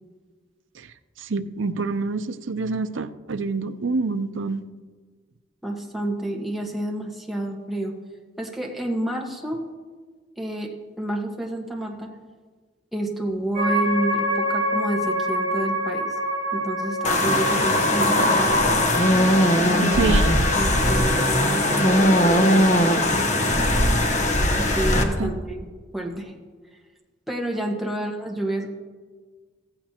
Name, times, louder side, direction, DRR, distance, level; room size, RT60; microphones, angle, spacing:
voice 1, 1.2-4.6 19.8-20.3 25.2-25.3 28.0-28.1, right 4 dB, 90° right, 11 dB, 0.6 m, -27 dB
voice 2, 5.6-7.9 8.4-9.6 10.4-10.7 11.0-12.1 12.9-16.1 16.5-18.8 19.6-20.0 20.5-23.7 24.6-26.3 26.7-26.8 27.3-28.7, right 1 dB, ahead, -1 dB, 1.4 m, -29 dB
sound 1, 13.5-24.0, equal, 55° right, 4.5 m, -29 dB
sound 2, 17.0-25.0, left 1 dB, 35° left, 1.1 m, -19 dB
15.5 x 15.0 x 2.9 m, 1.4 s
head